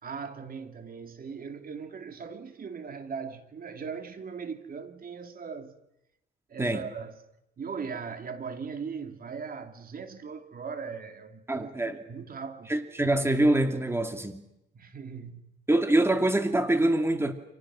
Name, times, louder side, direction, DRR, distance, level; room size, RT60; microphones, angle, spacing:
voice 1, 0.0-5.8 6.5-7.2 7.6-12.7 14.7-15.5, right 5 dB, 45° right, 2.9 m, -39 dB
voice 2, 11.5-12.0 12.7-14.4 15.7-17.3, right 1 dB, 10° right, 2.7 m, -25 dB
30.0 x 28.5 x 6.4 m
cardioid pair, 90°, 20 cm